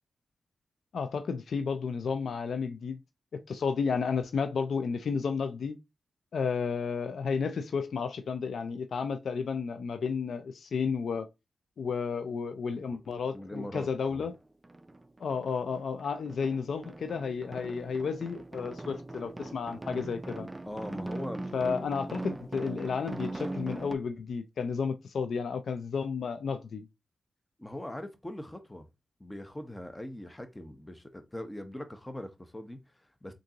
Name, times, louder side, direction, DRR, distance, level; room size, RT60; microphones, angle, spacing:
voice 1, 0.9-3.0 3.3-5.7 6.3-11.3 11.8-14.3 15.2-20.5 21.5-26.9, left 5 dB, 75° left, 0.3 m, -32 dB
sound 1, 12.7-12.8 13.2-14.4 14.6-24.0, right 2 dB, 25° right, 0.3 m, -41 dB
voice 2, 13.3-14.3 20.7-21.7 27.6-28.9 29.2-33.3, left 1 dB, 15° left, 0.8 m, -41 dB
3.6 x 2.5 x 2.8 m
supercardioid pair, 45°, 0 cm